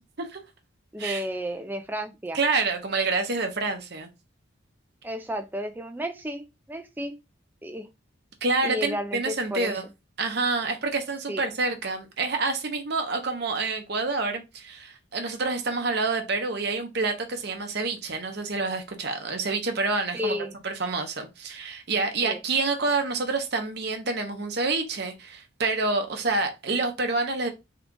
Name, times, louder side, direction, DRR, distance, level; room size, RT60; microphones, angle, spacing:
voice 1, 0.9-2.4 5.0-7.1 7.6-7.9 8.6-9.7 11.3-11.4 20.1-20.5 22.2-22.4, equal, 10° right, 0.4 m, -32 dB
voice 2, 2.3-4.1 8.4-9.8 10.2-20.4 20.6-27.5, right 3 dB, 50° right, 0.8 m, -27 dB
3.7 x 2.3 x 3.7 m
head